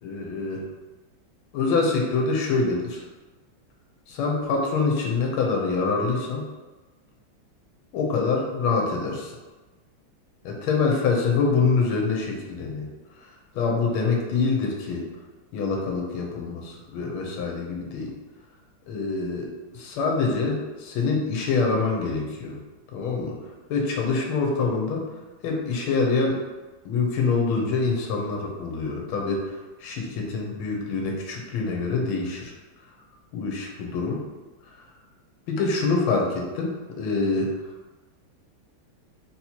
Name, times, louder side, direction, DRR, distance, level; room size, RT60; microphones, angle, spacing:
voice 1, 0.0-0.6 1.5-3.0 4.1-6.4 7.9-9.3 10.4-12.9 13.5-15.0 15.5-18.1 18.9-19.5 19.7-22.6 22.9-23.4 23.7-25.1 25.4-26.4 26.8-29.4 29.8-32.5 33.3-34.2 35.5-37.5, left 4 dB, 85° left, 0 dB, 1.6 m, -25 dB
4.1 x 2.9 x 4.3 m, 1.2 s
omnidirectional pair, 2.3 m